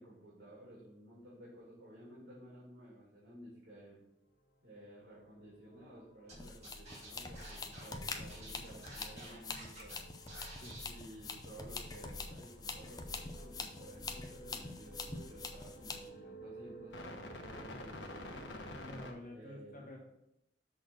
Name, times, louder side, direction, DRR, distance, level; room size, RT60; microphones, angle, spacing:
voice 1, 0.0-4.0 4.6-10.0 10.8-18.3 19.3-19.8, right 1 dB, 70° right, -7 dB, 2.3 m, -54 dB
sound 1, 5.1-5.4 5.7-19.1, equal, 85° left, 1.0 m, -52 dB
sound 2, 6.3-16.1, left 3 dB, 20° left, 0.6 m, -45 dB
Scratching (performance technique), 6.3-6.4 6.6-10.0 10.3-10.8, right 2 dB, 40° right, 2.2 m, -51 dB
voice 2, 10.5-10.8 18.8-20.0, left 1 dB, 50° left, -3 dB, 1.5 m, -50 dB
6.3 x 3.9 x 6.2 m, 0.80 s
head